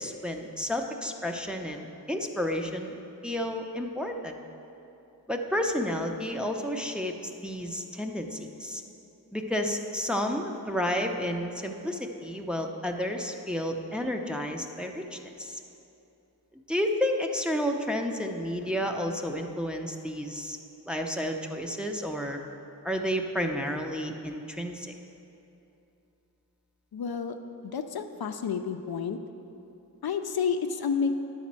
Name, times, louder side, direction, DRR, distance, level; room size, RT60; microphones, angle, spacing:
voice 1, 0.0-2.9 3.2-4.4 5.3-7.1 7.4-8.8 9.3-15.6 16.7-20.6 20.9-22.4 22.8-24.9, equal, ahead, 2 dB, 0.7 m, -31 dB
voice 2, 26.9-27.4 27.6-29.2 30.0-31.2, left 6 dB, 70° left, 6 dB, 0.5 m, -30 dB
9.7 x 4.2 x 7.5 m, 2.9 s
cardioid pair, 50°, 38 cm